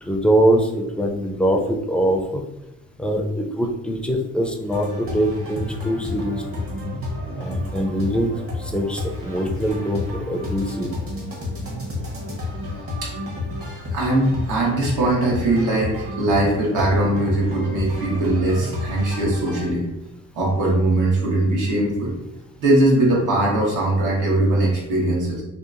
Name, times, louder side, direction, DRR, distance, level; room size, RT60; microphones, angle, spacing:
voice 1, 0.0-2.4 3.0-6.7 7.3-8.3 8.6-11.0, right 1 dB, 5° left, 1 dB, 0.3 m, -23 dB
sound 1, 4.7-19.7, left 2 dB, 45° right, 1.0 m, -31 dB
voice 2, 13.9-19.9 20.3-22.1 22.6-25.4, right 1 dB, 80° right, -3 dB, 1.1 m, -20 dB
2.8 x 2.3 x 2.4 m, 0.94 s
cardioid pair, 90°, 30 cm